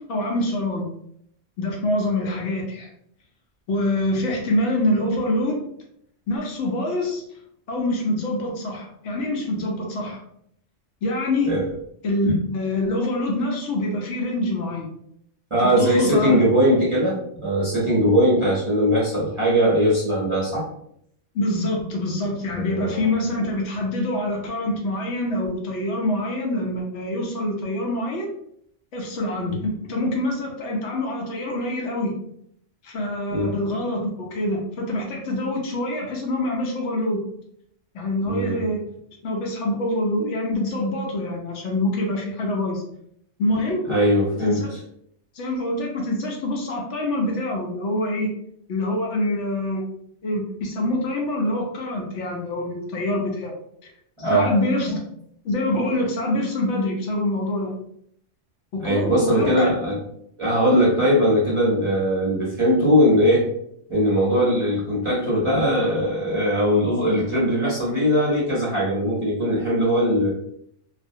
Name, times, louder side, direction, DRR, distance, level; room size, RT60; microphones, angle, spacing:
voice 1, 0.1-0.9 1.6-2.9 3.7-5.6 6.3-7.2 7.7-10.2 11.0-11.5 12.0-14.9 15.6-16.4 21.3-28.3 28.9-32.2 32.8-37.2 37.9-38.8 39.2-42.8 43.4-43.9 44.4-44.7 45.3-48.3 48.7-49.8 50.2-53.5 53.8-53.9 54.2-55.0 55.4-57.7 58.7-59.7, left 1 dB, 70° left, 0 dB, 0.9 m, -25 dB
voice 2, 15.5-20.7 22.6-23.1 33.3-33.5 38.3-38.6 43.9-44.6 54.2-54.5 58.8-60.0 60.4-63.4 63.9-70.3, equal, 30° right, -8 dB, 0.6 m, -20 dB
2.4 x 2.1 x 2.6 m, 0.70 s
omnidirectional pair, 1.3 m